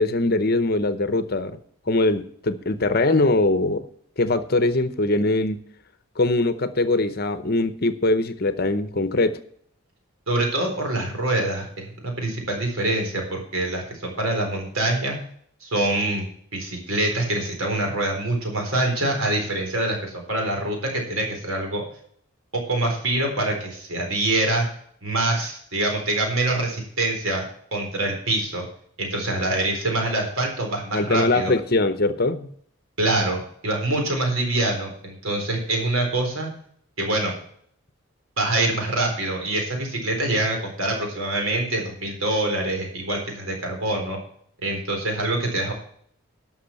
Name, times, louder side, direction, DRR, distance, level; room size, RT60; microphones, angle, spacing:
voice 1, 0.0-1.6 1.9-3.9 4.2-5.6 6.2-9.4 30.9-32.5, left 2 dB, 45° left, 12 dB, 0.8 m, -22 dB
voice 2, 10.3-15.2 15.6-16.3 16.5-21.8 22.5-24.7 25.0-27.5 27.7-28.7 29.0-31.5 33.0-36.5 37.0-37.3 38.4-44.2 44.6-45.7, right 2 dB, 75° right, 2 dB, 4.0 m, -25 dB
12.0 x 6.2 x 7.0 m, 0.62 s
head